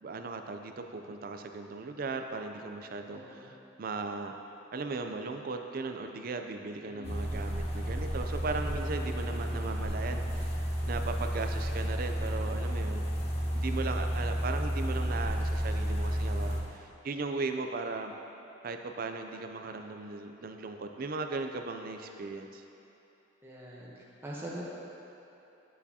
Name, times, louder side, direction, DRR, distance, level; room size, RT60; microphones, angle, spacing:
voice 1, 0.0-4.3 4.7-10.6 10.9-13.0 13.5-18.1 18.6-22.6, right 3 dB, 50° right, 6 dB, 0.4 m, -37 dB
voice 2, 3.1-3.5 6.8-7.1 23.4-24.6, right 1 dB, 10° right, -5 dB, 0.9 m, -43 dB
sound 1, 7.0-16.6, equal, 35° left, 0.9 m, -32 dB
9.3 x 7.0 x 2.8 m, 3.0 s
head